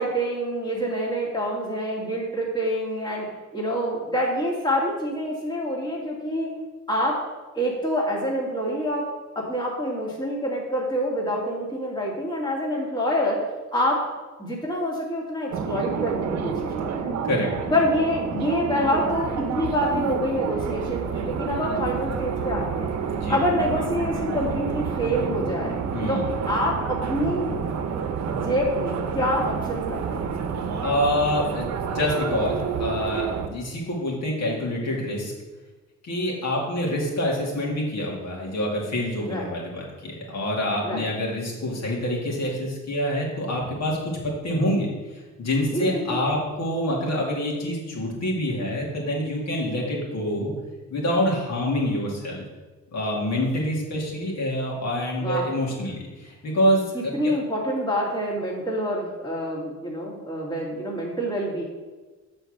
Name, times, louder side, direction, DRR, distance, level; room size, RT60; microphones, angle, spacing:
voice 1, 0.0-3.3 3.5-6.5 6.9-7.2 7.5-9.1 9.4-13.4 13.7-14.0 14.4-17.2 17.7-22.9 23.3-25.8 26.1-27.5 28.3-30.3 39.3-39.5 40.8-41.0 45.7-46.2 55.2-55.5 57.1-61.6, equal, 15° left, -4 dB, 2.0 m, -26 dB
sound 1, 15.5-33.5, right 6 dB, 65° right, 0.8 m, -29 dB
voice 2, 30.8-35.3 36.0-44.0 44.2-50.5 50.9-52.4 52.9-57.3, left 1 dB, 60° left, -3 dB, 2.7 m, -26 dB
6.9 x 4.4 x 6.5 m, 1.3 s
cardioid pair, 90°, 30 cm